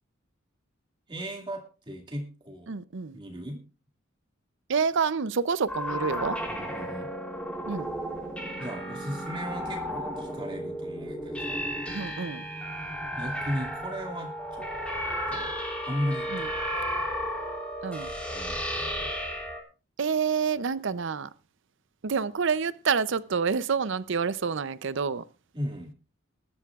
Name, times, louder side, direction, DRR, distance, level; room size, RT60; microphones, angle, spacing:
voice 1, 1.1-2.8 3.1-3.6 6.5-7.1 8.6-11.6 13.1-14.7 15.3-15.5 15.8-17.1 18.3-19.1 25.5-25.9, equal, 25° right, 2.3 m, -36 dB
voice 2, 2.7-3.2 4.7-6.4 7.7-7.9 11.9-12.4 16.3-16.5 17.8-18.1 20.0-21.3 22.0-25.2, right 5 dB, 65° right, 0.6 m, -28 dB
sound 1, 5.7-19.6, equal, 5° left, 3.2 m, -33 dB
20.5 x 12.0 x 2.4 m
head